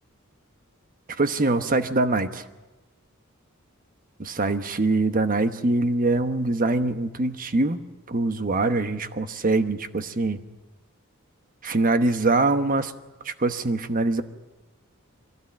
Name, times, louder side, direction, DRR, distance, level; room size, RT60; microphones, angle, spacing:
voice 1, 1.1-2.4 4.2-10.4 11.6-12.9 13.2-14.2, right 2 dB, 40° right, 9 dB, 1.1 m, -23 dB
23.5 x 16.5 x 8.8 m, 1.1 s
head